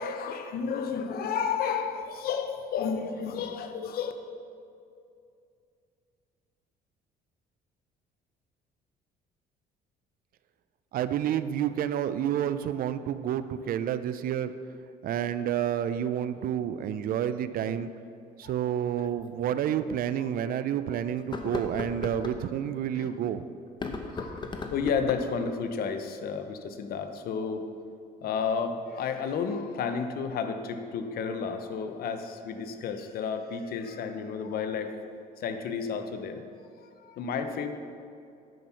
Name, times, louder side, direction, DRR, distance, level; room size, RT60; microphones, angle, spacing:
voice 1, 0.0-4.1 23.0-23.1 24.1-27.6 28.2-34.9 35.4-36.4 37.0-37.7, left 6 dB, 65° left, 8 dB, 0.8 m, -32 dB
voice 2, 10.9-14.5 15.0-17.9 18.4-23.5, right 10 dB, 60° right, 13 dB, 0.5 m, -29 dB
sound 1, 18.0-18.1 19.2-19.3 19.9-20.0 21.2-22.4 23.7-25.4, left 3 dB, 25° left, 0.9 m, -36 dB
9.2 x 6.1 x 5.7 m, 2.4 s
cardioid pair, 110°, 17 cm